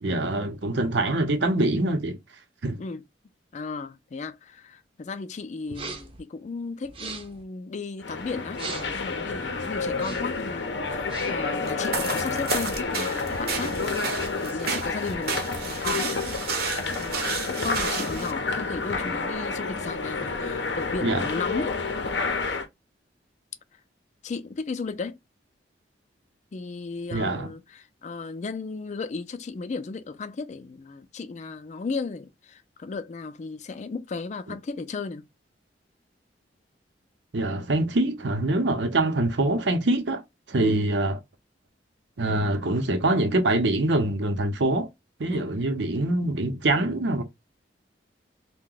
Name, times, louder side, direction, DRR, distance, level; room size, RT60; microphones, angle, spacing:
voice 1, 0.0-2.2 2.6-2.8 21.0-21.2 27.1-27.5 37.3-40.2 40.5-41.2 42.2-44.9 45.2-47.2, right 2 dB, 85° right, 0.7 m, -24 dB
voice 2, 3.5-16.2 16.9-21.8 24.2-25.2 26.5-35.3 40.6-40.8 45.3-45.5, left 4 dB, 40° left, 0.4 m, -35 dB
sound 1, 5.7-6.2 6.8-7.4 8.5-9.1 9.9-10.4 10.9-11.5, right 4 dB, 30° right, 0.6 m, -39 dB
sound 2, 8.0-22.7, left 4 dB, 80° left, 0.6 m, -30 dB
sound 3, 11.7-18.3, right 5 dB, 60° right, 0.8 m, -32 dB
2.8 x 2.2 x 3.8 m
head